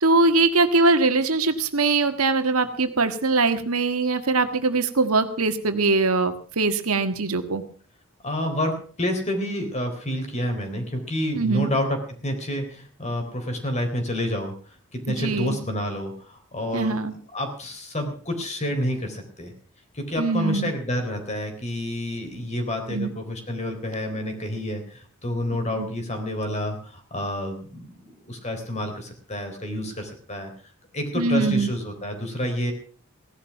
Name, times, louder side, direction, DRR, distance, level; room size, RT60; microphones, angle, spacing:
voice 1, 0.0-7.6 11.3-11.7 15.1-15.6 16.7-17.1 20.2-20.7 22.9-23.1 25.8-25.9 31.1-31.7, right 3 dB, 80° right, 8 dB, 1.6 m, -22 dB
voice 2, 8.2-17.0 17.3-19.5 19.9-27.9 28.2-30.5 30.9-32.7, left 1 dB, 30° left, 5 dB, 3.8 m, -29 dB
17.0 x 11.5 x 5.9 m, 0.42 s
head